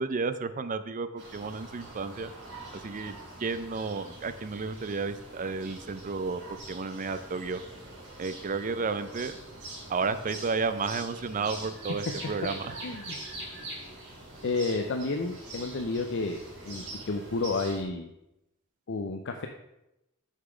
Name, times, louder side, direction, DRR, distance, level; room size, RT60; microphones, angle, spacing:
voice 1, 0.0-2.3 2.8-7.6 8.2-9.4 9.9-12.7, right 4 dB, 40° right, 12 dB, 0.5 m, -32 dB
sound 1, 1.2-17.8, right 2 dB, 55° right, 3.0 m, -44 dB
voice 2, 12.8-13.2 14.4-18.1 18.9-19.5, left 3 dB, 60° left, 4 dB, 0.6 m, -31 dB
6.5 x 5.9 x 5.0 m, 0.90 s
head